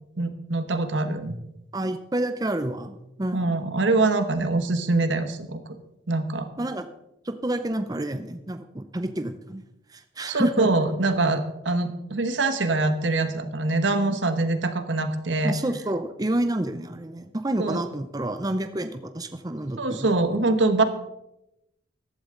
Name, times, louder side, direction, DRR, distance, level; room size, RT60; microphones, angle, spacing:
voice 1, 0.2-1.4 3.3-5.6 6.1-6.5 10.3-15.6 17.6-17.8 19.8-20.8, right 2 dB, 80° right, 9 dB, 1.3 m, -24 dB
voice 2, 1.7-3.6 6.6-6.8 7.2-9.6 9.9-10.7 15.4-20.1, right 1 dB, 20° right, 8 dB, 0.7 m, -29 dB
14.5 x 12.0 x 3.9 m, 0.86 s
head